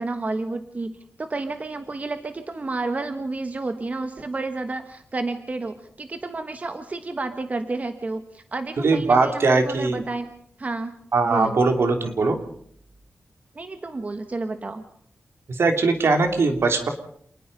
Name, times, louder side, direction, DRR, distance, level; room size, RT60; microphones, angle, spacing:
voice 1, 0.0-10.3 10.6-10.9 11.2-11.6 13.5-14.8, right 3 dB, 35° right, 8 dB, 1.5 m, -30 dB
voice 2, 8.8-10.0 11.1-12.4 15.6-16.9, right 3 dB, 70° right, 5 dB, 3.3 m, -20 dB
28.0 x 20.0 x 5.5 m, 0.64 s
wide cardioid pair, 135°, 4 cm